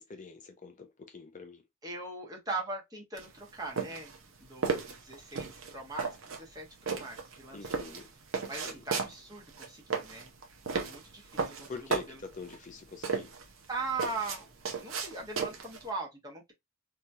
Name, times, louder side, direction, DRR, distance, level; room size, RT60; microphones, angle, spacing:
voice 1, 0.0-1.6 7.5-8.1 8.5-8.8 11.7-13.3, left 4 dB, 40° left, 0.4 m, -45 dB
voice 2, 1.8-4.1 4.4-7.8 8.5-10.3 10.7-12.2 13.7-16.5, right 3 dB, 20° right, 1.1 m, -40 dB
sound 1, 3.2-15.9, right 5 dB, 80° right, 0.7 m, -35 dB
2.9 x 2.8 x 2.3 m
head